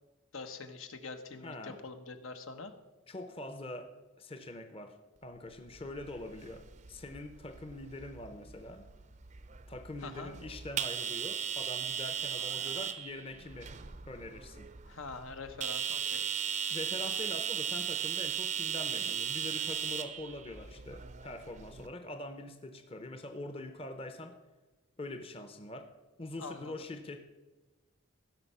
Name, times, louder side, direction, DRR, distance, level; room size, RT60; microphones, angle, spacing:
voice 1, 0.3-2.7 10.0-10.4 12.4-12.9 14.8-16.2 26.4-26.7, left 3 dB, 75° left, 7 dB, 1.0 m, -45 dB
voice 2, 1.4-1.8 3.1-3.9 4.2-5.0 5.2-8.8 9.7-13.7 14.1-14.7 16.7-24.4 25.0-25.9 26.2-27.3, left 1 dB, 25° left, 7 dB, 0.7 m, -44 dB
sound 1, 5.7-21.9, right 8 dB, 35° right, 0.5 m, -37 dB
16.0 x 6.5 x 5.5 m, 1.1 s
head